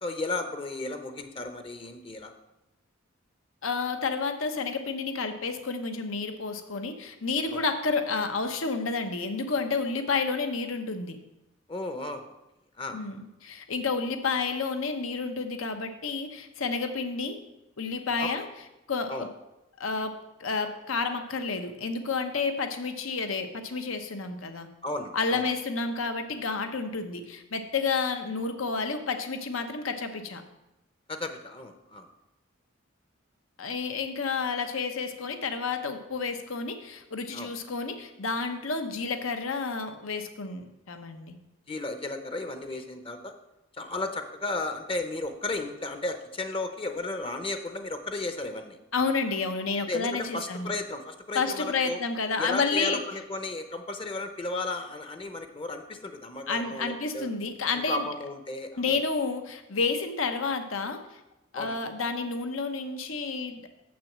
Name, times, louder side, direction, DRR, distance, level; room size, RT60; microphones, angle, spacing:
voice 1, 0.0-2.3 7.5-7.6 11.7-12.4 12.8-13.0 18.2-18.3 19.1-19.3 24.8-25.4 31.1-32.1 37.3-37.5 41.7-43.4 43.7-48.8 49.9-52.0 52.4-57.3 57.7-59.0 61.5-61.8, left 2 dB, 25° left, 7 dB, 0.7 m, -34 dB
voice 2, 3.6-11.2 12.9-17.4 17.8-18.4 18.9-19.3 19.8-24.7 25.1-30.4 33.6-41.4 48.9-50.7 51.3-53.0 56.5-58.1 58.8-61.2 61.5-63.6, left 4 dB, 80° left, 7 dB, 0.9 m, -30 dB
7.2 x 6.1 x 7.3 m, 0.95 s
head